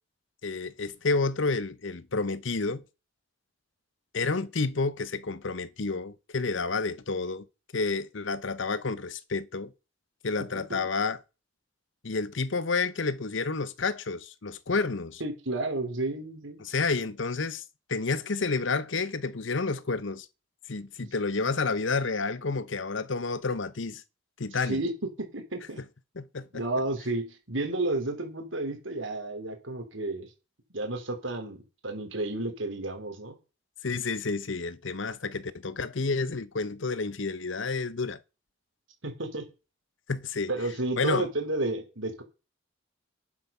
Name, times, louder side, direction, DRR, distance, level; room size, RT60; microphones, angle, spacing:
voice 1, 0.4-2.8 4.1-7.5 7.7-9.7 10.2-11.2 12.0-15.2 16.6-17.6 17.9-20.3 20.7-24.0 24.4-24.8 26.2-26.6 33.8-38.2 40.1-40.5 41.0-41.3, left 4 dB, 75° left, 0.9 m, -30 dB
voice 2, 15.2-16.6 24.6-25.8 26.5-30.3 30.7-33.4 39.0-39.5 40.5-42.2, right 2 dB, 80° right, 3.4 m, -32 dB
11.5 x 9.8 x 5.6 m
head